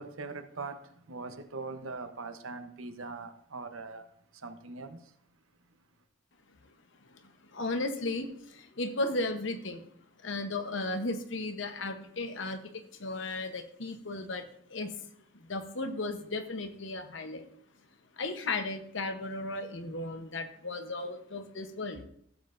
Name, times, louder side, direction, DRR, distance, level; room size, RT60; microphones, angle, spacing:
voice 1, 0.0-6.0, right 3 dB, 80° right, 1.0 m, -42 dB
voice 2, 7.5-9.9 10.2-14.9 15.3-17.4 18.2-22.1, left 2 dB, 65° left, 1.0 m, -35 dB
15.0 x 7.5 x 2.6 m
head